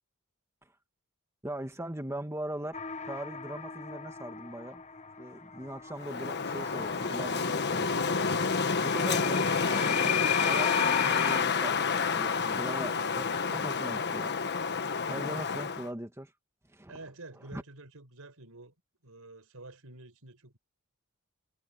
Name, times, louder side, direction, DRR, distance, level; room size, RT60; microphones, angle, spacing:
voice 1, 1.4-4.8 5.2-8.1 8.8-10.2 10.4-14.3 15.1-16.3 16.7-16.9 17.5-17.6, right 1 dB, 15° right, 1.9 m, -40 dB
sound 1, 2.7-11.4, left 7 dB, 30° left, 1.0 m, -36 dB
Wind, 6.0-15.9, left 5 dB, 50° left, 1.3 m, -29 dB
voice 2, 16.9-18.7 19.0-20.6, right 2 dB, 75° right, 5.0 m, -49 dB
head